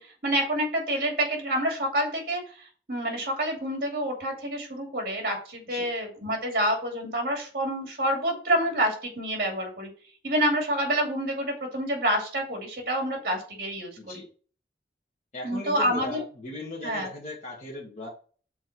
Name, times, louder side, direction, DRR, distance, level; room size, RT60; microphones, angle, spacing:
voice 1, 0.2-2.4 2.9-9.9 10.2-13.9 15.4-16.2 16.8-17.1, right 1 dB, 55° right, 2 dB, 2.5 m, -27 dB
voice 2, 14.0-14.3 15.3-18.1, left 2 dB, 40° left, -3 dB, 1.7 m, -38 dB
6.2 x 4.4 x 6.0 m, 0.41 s
head